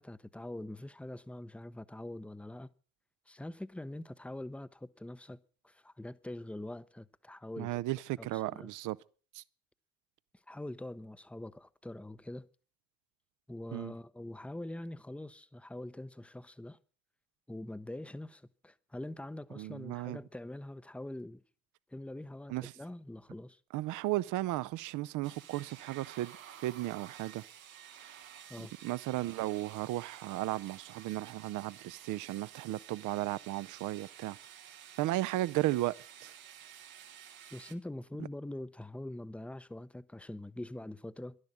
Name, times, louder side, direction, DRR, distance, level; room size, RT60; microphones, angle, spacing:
voice 1, 0.0-2.7 3.3-5.4 5.6-7.8 8.2-8.7 10.5-12.5 13.5-16.8 17.5-21.4 21.9-23.6 28.5-28.7 37.5-41.4, left 1 dB, 5° left, 0.7 m, -44 dB
voice 2, 7.6-9.0 9.3-9.4 13.7-13.9 19.6-20.2 22.5-22.7 23.7-26.4 26.6-27.4 28.8-34.4 35.0-35.9 36.2-36.3, right 16 dB, 50° right, 0.6 m, -35 dB
sound 1, 25.2-37.7, right 10 dB, 80° right, 1.4 m, -52 dB
12.0 x 11.0 x 7.3 m
figure-of-eight pair, 50°, 40 cm